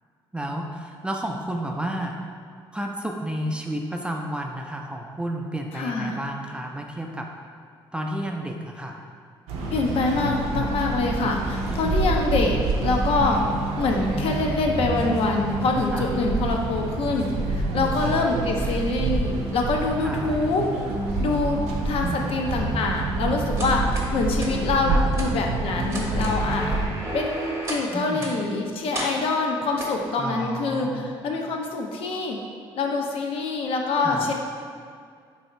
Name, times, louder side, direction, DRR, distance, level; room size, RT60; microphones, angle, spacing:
voice 1, 0.3-2.2 2.7-7.3 7.9-9.0 11.7-12.0 15.9-16.1 17.7-18.0 20.0-20.3 22.0-22.3 24.9-25.1 27.9-28.3 30.2-31.1 34.0-34.3, right 1 dB, 10° right, 1 dB, 0.4 m, -31 dB
voice 2, 5.7-6.3 9.7-12.6 12.8-13.4 13.8-20.7 21.2-26.8 27.1-32.4 32.8-34.3, left 3 dB, 65° left, 1 dB, 0.5 m, -25 dB
sound 1, 9.5-26.9, right 2 dB, 90° right, 0.5 m, -27 dB
sound 2, 23.6-24.1 24.4-24.5 25.1-25.3 25.8-27.9 28.2-28.4 28.9-29.1 29.8-30.0, right 1 dB, 25° right, 0.8 m, -33 dB
2.8 x 2.7 x 4.2 m, 2.2 s
supercardioid pair, 75°, 10 cm